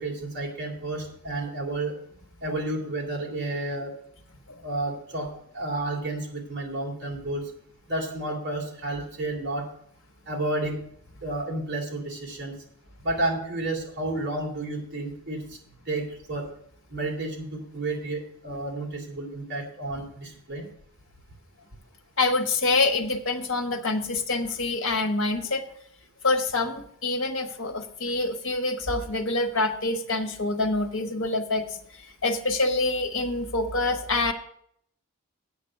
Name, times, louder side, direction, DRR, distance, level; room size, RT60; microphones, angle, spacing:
voice 1, 0.0-1.9 2.4-3.9 4.6-5.3 5.5-7.4 7.9-9.7 10.3-10.8 11.2-12.5 13.0-15.4 15.9-16.5 16.9-20.7, right 2 dB, 50° right, -1 dB, 2.8 m, -31 dB
voice 2, 22.2-25.7 26.2-34.3, left 2 dB, 60° left, 5 dB, 1.2 m, -26 dB
8.7 x 6.0 x 7.7 m, 0.68 s
head